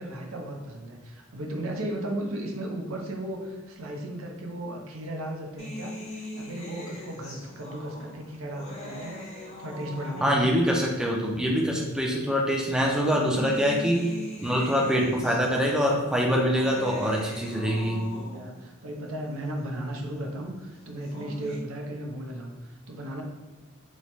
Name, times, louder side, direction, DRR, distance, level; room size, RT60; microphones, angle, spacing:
voice 1, 0.0-6.0 6.3-9.2 9.6-10.5 18.1-23.2, right 1 dB, 85° right, 1 dB, 0.6 m, -35 dB
sound 1, 5.6-10.7 11.6-11.7 12.8-18.7 20.8-21.6, left 1 dB, 35° left, 0.8 m, -41 dB
voice 2, 10.2-14.0 14.4-18.0, equal, 5° right, -2 dB, 0.4 m, -24 dB
3.1 x 2.1 x 4.1 m, 1.2 s
head